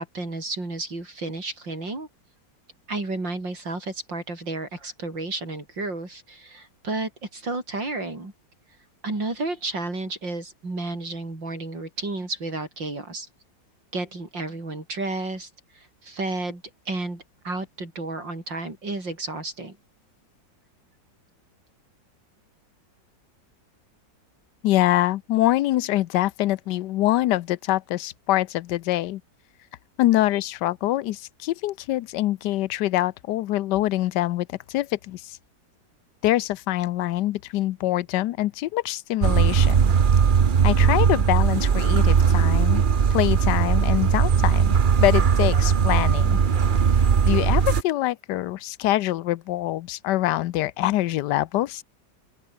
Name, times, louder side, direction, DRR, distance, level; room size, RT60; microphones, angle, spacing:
voice 1, 0.0-2.1 2.9-8.3 9.0-13.3 13.9-19.8, right 2 dB, 80° right, 7.4 m, -32 dB
voice 2, 24.6-29.2 30.0-35.4 36.2-39.9 40.6-42.8 43.1-46.4 47.2-51.8, left 15 dB, 70° left, 1.2 m, -24 dB
sound 1, 39.2-47.8, right 6 dB, 40° right, 0.7 m, -19 dB
open air
omnidirectional pair, 2.0 m